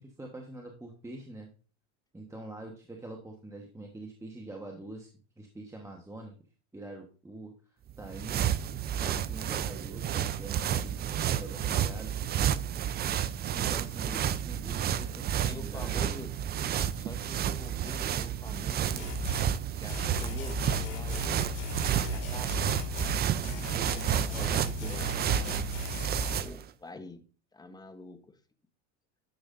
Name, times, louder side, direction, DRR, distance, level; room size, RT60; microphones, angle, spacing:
voice 1, 0.0-1.5 2.1-5.1 5.4-6.3 6.7-12.2 13.5-16.0 23.7-25.7, right 2 dB, 10° right, 1 dB, 1.2 m, -45 dB
sound 1, 7.9-26.6, right 10 dB, 30° right, 0.4 m, -31 dB
voice 2, 15.4-16.3 16.9-19.1 19.7-21.6 21.9-22.6 24.2-24.6 24.8-25.1 26.3-27.2 27.5-28.4, left 3 dB, 10° left, 9 dB, 1.0 m, -46 dB
sound 2, 19.0-19.5 19.9-23.2 23.4-26.4, left 7 dB, 55° left, 2.3 m, -38 dB
10.5 x 7.0 x 2.6 m, 0.38 s
supercardioid pair, 105°, 36 cm